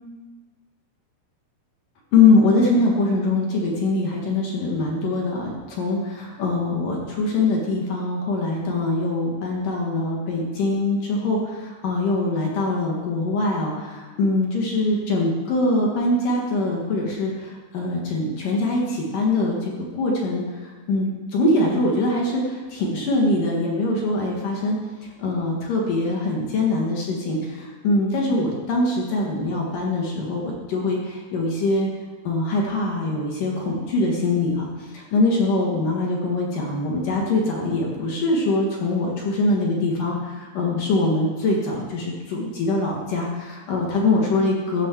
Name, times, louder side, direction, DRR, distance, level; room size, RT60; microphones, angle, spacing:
voice 1, 2.1-20.4 20.9-24.8 25.2-31.9 32.2-34.7 34.9-44.9, left 2 dB, 60° left, -2 dB, 2.4 m, -23 dB
14.5 x 5.4 x 7.2 m, 1.4 s
omnidirectional pair, 5.6 m